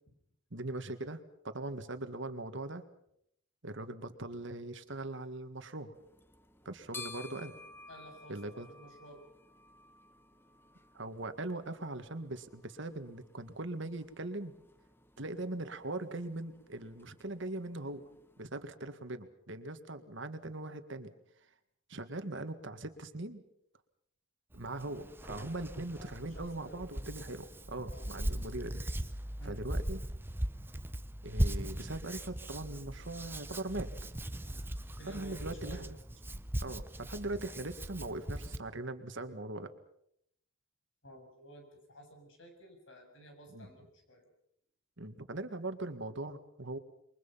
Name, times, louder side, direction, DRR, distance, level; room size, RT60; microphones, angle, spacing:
voice 1, 0.5-2.8 3.6-5.9 6.7-7.5 8.3-8.7 10.9-14.5 15.2-18.1 18.4-21.1 21.9-23.4 24.5-28.8 29.4-30.0 31.2-33.9 35.1-36.0 36.6-39.7 43.5-43.7 45.0-46.8, right 2 dB, 60° right, 9 dB, 1.8 m, -40 dB
sound 1, 5.9-18.5, left 3 dB, 10° left, 1.0 m, -55 dB
voice 2, 7.9-9.3 25.4-26.8 27.9-28.1 29.4-29.7 35.0-35.9 41.0-44.3, right 1 dB, 65° left, 4 dB, 7.3 m, -53 dB
Hands, 24.5-38.6, right 1 dB, 10° right, 0.8 m, -39 dB
28.0 x 23.0 x 5.7 m, 0.72 s
head